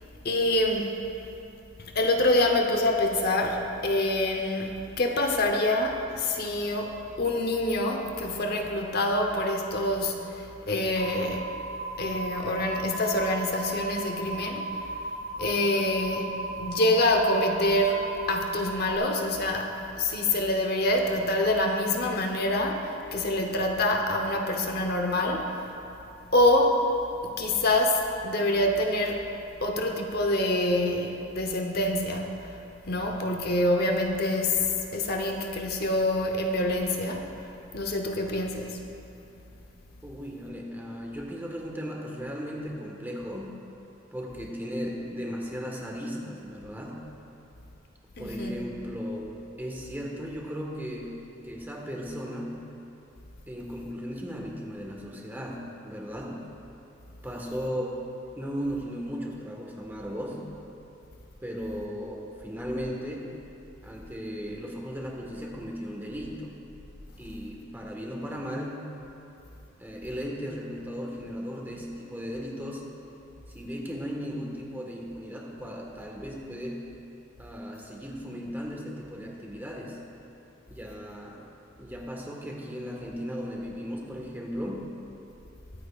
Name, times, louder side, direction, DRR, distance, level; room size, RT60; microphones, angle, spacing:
voice 1, 0.2-1.0 1.8-11.5 12.0-14.7 15.4-25.6 26.3-26.9 27.2-29.3 29.6-32.4 32.9-37.3 37.7-38.8 48.2-48.6, left 1 dB, 55° left, 2 dB, 0.8 m, -26 dB
sound 1, 11.0-19.0, right 2 dB, 70° right, 0.9 m, -36 dB
voice 2, 40.0-43.5 44.1-47.0 48.2-49.3 49.6-52.6 53.5-56.4 57.2-58.0 58.4-60.4 61.4-63.3 63.8-66.5 67.2-68.8 69.8-72.9 73.5-76.9 77.4-80.0 80.7-81.4 81.8-84.8, equal, 10° right, -2 dB, 1.4 m, -36 dB
23.0 x 9.1 x 2.4 m, 2.9 s
head